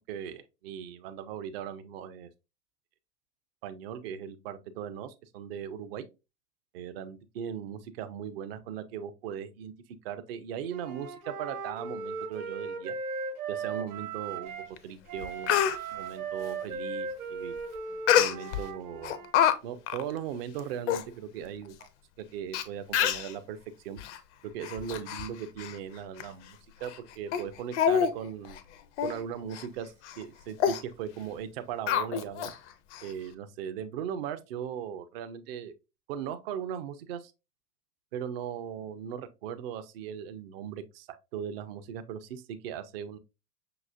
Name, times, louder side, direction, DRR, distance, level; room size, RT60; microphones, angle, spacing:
voice 1, 0.1-2.3 3.6-6.1 6.7-9.7 10.0-12.9 13.5-14.5 14.8-15.6 15.9-17.5 18.1-19.2 19.6-21.9 22.2-24.0 24.4-28.6 29.0-32.5 33.0-35.7 36.1-37.3 38.1-43.2, right 8 dB, 40° right, 0.5 m, -38 dB
Wind instrument woodwind instrument, 10.7-14.7 15.1-19.3, right 4 dB, 60° right, 1.0 m, -37 dB
Speech, 14.8-14.9 15.2-15.8 18.1-18.6 19.0-19.5 19.9-20.0 20.6-20.7 20.9-21.0 21.8-21.9 22.5-22.6 22.9-23.3 24.0-24.2 24.6-25.3 25.6-25.8 26.2-26.3 26.8-27.0 27.3-27.4 27.7-28.1 28.4-28.6 29.0-29.2 29.5-29.7 30.0-30.2 30.6-30.8 31.9-32.5 32.9-33.0, left 9 dB, 45° left, 0.5 m, -26 dB
5.8 x 2.9 x 2.4 m
figure-of-eight pair, 85°, 49 cm